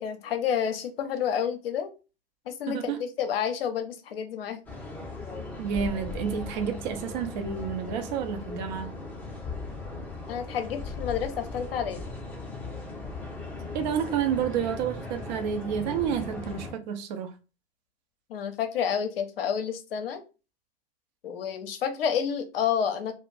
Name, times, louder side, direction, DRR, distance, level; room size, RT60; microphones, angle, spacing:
voice 1, 0.0-1.9 2.5-4.6 10.3-12.0 18.3-20.2 21.2-23.2, left 8 dB, 60° left, 0.6 m, -29 dB
voice 2, 2.7-3.0 5.6-8.9 13.7-17.3, right 8 dB, 45° right, 0.5 m, -30 dB
sound 1, 4.7-16.7, left 3 dB, 5° left, 0.6 m, -38 dB
2.4 x 2.0 x 3.1 m
figure-of-eight pair, 105°, 32 cm